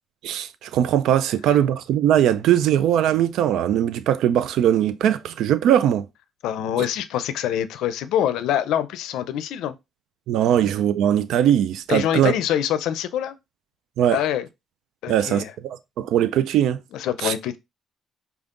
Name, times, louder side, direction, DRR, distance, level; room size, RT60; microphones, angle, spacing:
voice 1, 0.2-6.1 6.8-6.9 10.3-12.3 14.0-14.2 15.1-16.8 17.2-17.3, right 10 dB, 85° right, 0.3 m, -20 dB
voice 2, 6.4-9.7 11.9-13.4 14.1-14.5 15.0-15.5 16.9-17.6, left 10 dB, 90° left, 0.5 m, -25 dB
5.1 x 2.4 x 3.6 m
cardioid pair, 90°, 0 cm